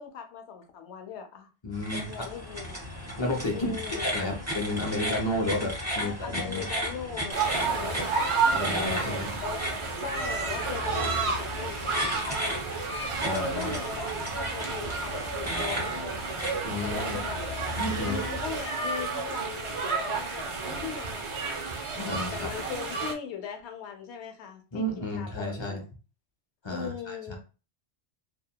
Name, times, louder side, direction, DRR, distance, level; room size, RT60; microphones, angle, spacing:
voice 1, 0.0-1.5 1.9-2.8 3.5-4.1 6.0-9.0 9.4-9.6 10.0-12.9 13.3-16.3 16.8-17.4 18.1-21.6 22.3-25.9 26.7-27.4, left 7 dB, 85° left, 0.9 m, -39 dB
voice 2, 1.6-2.3 3.2-3.7 4.1-6.7 7.6-7.9 8.5-9.4 13.2-13.7 16.6-17.2 17.8-18.2 21.9-22.5 24.7-25.8 26.6-27.4, left 1 dB, 40° left, 0.4 m, -32 dB
sound 1, 1.7-18.6, equal, 15° right, 1.5 m, -35 dB
sound 2, 7.3-23.1, right 4 dB, 60° right, 0.3 m, -31 dB
2.8 x 2.2 x 2.2 m
omnidirectional pair, 1.1 m